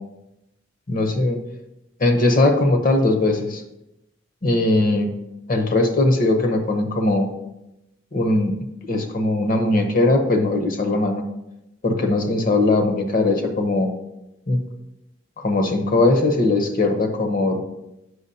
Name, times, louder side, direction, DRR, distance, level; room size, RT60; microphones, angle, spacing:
voice 1, 0.9-1.4 2.0-3.6 4.4-5.1 5.5-7.3 8.1-8.5 8.9-11.2 11.8-13.9 14.5-14.6 15.4-17.6, left 2 dB, 45° left, 5 dB, 0.8 m, -19 dB
7.9 x 5.8 x 2.8 m, 0.89 s
head